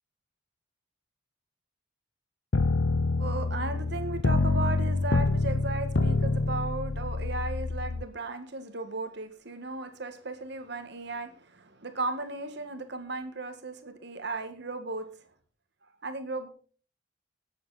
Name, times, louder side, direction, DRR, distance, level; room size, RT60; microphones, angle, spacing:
sound 1, 2.5-8.0, left 3 dB, 65° left, 0.8 m, -27 dB
voice 1, 3.2-15.2 16.0-16.5, right 2 dB, 60° right, 8 dB, 1.7 m, -36 dB
18.0 x 7.8 x 4.1 m, 0.42 s
head